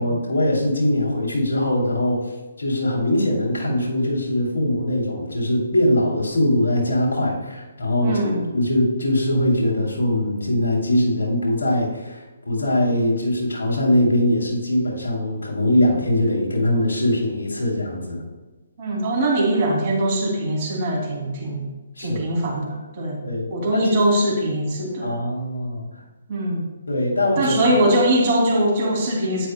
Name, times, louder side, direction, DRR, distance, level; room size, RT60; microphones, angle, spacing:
voice 1, 0.0-2.2 2.6-12.2 12.5-18.2 22.0-22.2 23.2-24.0 25.0-25.9 26.9-27.5, left 1 dB, 80° left, -2 dB, 3.0 m, -21 dB
voice 2, 8.0-8.4 18.8-21.7 22.0-23.2 23.5-25.1 26.3-26.7 27.4-29.5, right 1 dB, 40° right, -1 dB, 2.8 m, -22 dB
11.5 x 8.7 x 2.3 m, 1.1 s
hypercardioid pair, 145°, 0 cm